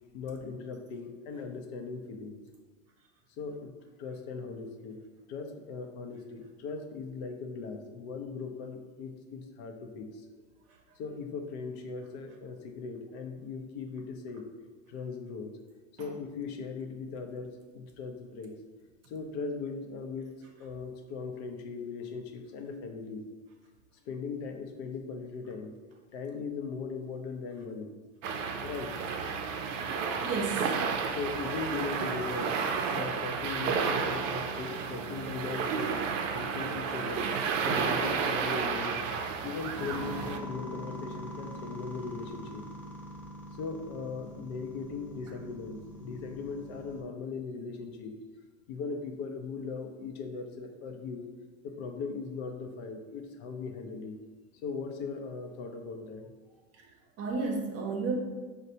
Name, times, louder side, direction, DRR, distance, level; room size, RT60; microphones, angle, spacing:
voice 1, 0.1-2.4 3.4-3.7 4.0-5.0 5.3-10.2 11.0-14.5 14.9-15.5 15.9-18.6 19.1-23.3 24.1-25.8 26.1-27.9 28.6-29.0 31.1-32.6 32.9-37.3 37.7-39.0 39.4-42.7 43.5-48.2 48.7-51.3 51.6-54.2 54.6-56.3, left 4 dB, 60° left, 4 dB, 0.6 m, -39 dB
sound 1, 28.2-40.4, right 5 dB, 80° right, 0.5 m, -32 dB
voice 2, 29.7-30.8 56.7-56.9 57.2-58.2, right 4 dB, 40° right, 2 dB, 0.7 m, -33 dB
sound 2, 39.8-47.0, equal, 5° left, 0.4 m, -43 dB
4.1 x 2.2 x 2.7 m, 1.4 s
supercardioid pair, 105°, 37 cm